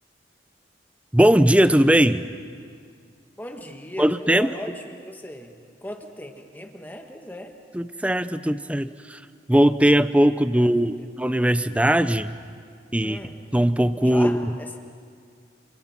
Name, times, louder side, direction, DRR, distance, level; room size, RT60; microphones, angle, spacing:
voice 1, 1.1-2.3 4.0-4.5 7.7-9.2 9.5-12.3 12.9-13.2 13.5-14.5, right 1 dB, 5° right, 12 dB, 0.6 m, -19 dB
voice 2, 3.4-7.5 10.5-11.1 13.0-13.4 14.0-14.8, equal, 10° left, 4 dB, 1.5 m, -38 dB
29.0 x 28.0 x 6.0 m, 2.1 s
head